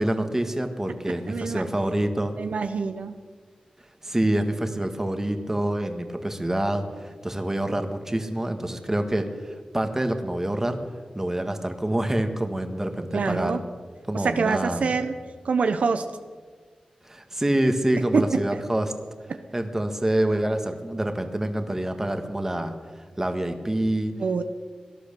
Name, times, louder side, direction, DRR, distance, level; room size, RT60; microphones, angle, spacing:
voice 1, 0.0-2.3 4.0-10.8 11.1-13.6 14.1-14.9 17.0-18.9 19.5-22.7 23.2-24.1, right 1 dB, 20° right, 6 dB, 1.7 m, -26 dB
voice 2, 1.3-1.6 2.4-3.1 13.1-13.6 14.1-15.1 15.4-16.1 18.1-18.3 18.5-18.6 19.3-19.4 24.2-24.4, right 5 dB, 80° right, 8 dB, 0.9 m, -25 dB
18.0 x 11.5 x 6.9 m, 1.5 s
cardioid pair, 65°, 2 cm